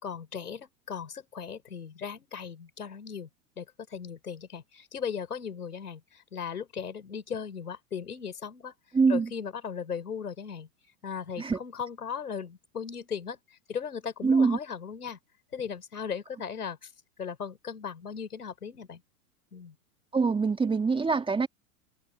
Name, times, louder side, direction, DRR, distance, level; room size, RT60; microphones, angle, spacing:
voice 1, 0.0-3.3 3.6-8.7 9.1-10.7 11.0-13.4 13.7-15.2 15.5-16.9 17.2-19.0 19.5-19.8, left 7 dB, 85° left, 5.2 m, -37 dB
voice 2, 8.9-9.3 11.4-11.6 14.2-14.6 20.1-21.5, right 4 dB, 10° right, 1.8 m, -24 dB
hypercardioid pair, 105°, 44 cm